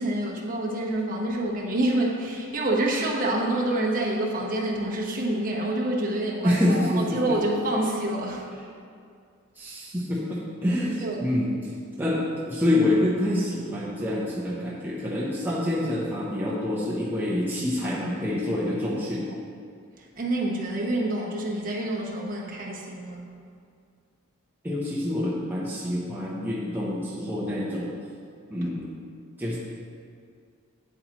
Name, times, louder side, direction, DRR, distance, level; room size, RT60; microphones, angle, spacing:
voice 1, 0.0-8.4 11.0-11.3 20.0-23.2, right 1 dB, 40° right, -2 dB, 1.1 m, -27 dB
voice 2, 6.4-7.4 8.6-8.7 9.6-11.7 12.0-19.3 24.6-27.9 28.5-28.9 29.4-29.6, left 1 dB, 10° right, -5 dB, 0.7 m, -27 dB
8.8 x 8.0 x 3.0 m, 2.3 s
head